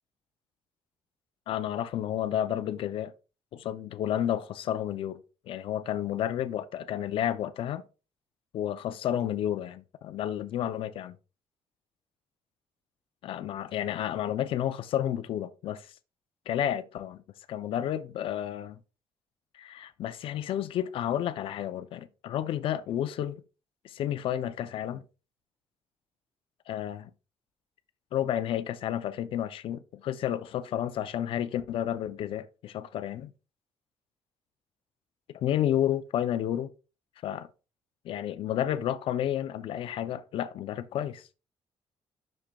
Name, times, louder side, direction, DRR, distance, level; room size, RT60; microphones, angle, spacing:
voice 1, 1.5-3.1 3.5-7.8 8.5-11.2 13.2-15.9 16.5-17.2 17.5-18.8 19.5-23.4 23.8-25.0 26.7-27.1 28.1-33.3 35.3-36.7 37.2-37.5 38.0-41.3, left 11 dB, 60° left, 0.5 m, -31 dB
10.0 x 6.4 x 2.3 m
cardioid pair, 160°, 10 cm